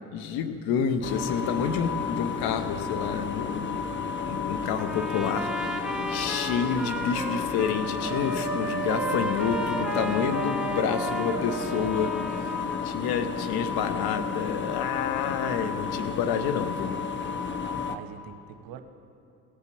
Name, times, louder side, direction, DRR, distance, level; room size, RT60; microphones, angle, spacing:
voice 1, 0.1-12.5 12.8-16.9, left 7 dB, 55° left, 8 dB, 1.1 m, -29 dB
sound 1, 1.0-18.0, left 6 dB, 25° left, 0.9 m, -32 dB
Trumpet, 4.8-12.9, right 1 dB, ahead, 1.0 m, -35 dB
sound 2, 8.0-12.4, right 5 dB, 25° right, 1.7 m, -35 dB
voice 2, 17.6-18.8, right 9 dB, 50° right, 9 dB, 1.0 m, -44 dB
16.5 x 8.2 x 6.8 m, 2.6 s
figure-of-eight pair, 60°, 45 cm